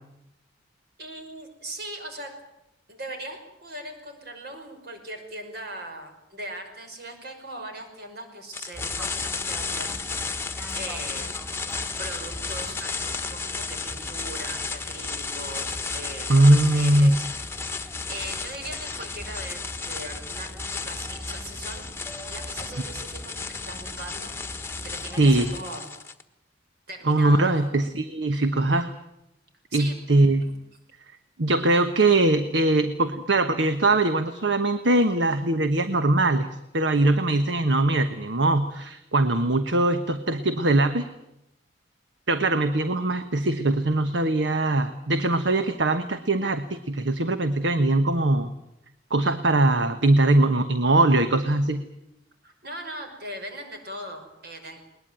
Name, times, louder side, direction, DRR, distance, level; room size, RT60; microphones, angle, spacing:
voice 1, 1.0-2.3 2.9-10.0 10.8-11.3 12.0-17.2 18.1-20.5 20.8-21.9 22.3-24.3 24.8-25.9 26.9-27.7 29.7-29.9 30.4-30.5 52.4-54.8, right 1 dB, 60° right, 5 dB, 5.8 m, -39 dB
sound 1, 8.5-26.2, left 4 dB, 15° left, 1.3 m, -33 dB
Fixed-wing aircraft airplane, 8.7-25.6, equal, 5° right, 3.7 m, -41 dB
voice 2, 16.3-17.2 25.2-25.5 27.0-28.9 29.7-30.5 31.4-36.5 36.7-41.1 42.3-48.5 49.1-51.8, right 2 dB, 75° right, 9 dB, 1.3 m, -21 dB
21.5 x 20.5 x 9.2 m, 0.84 s
head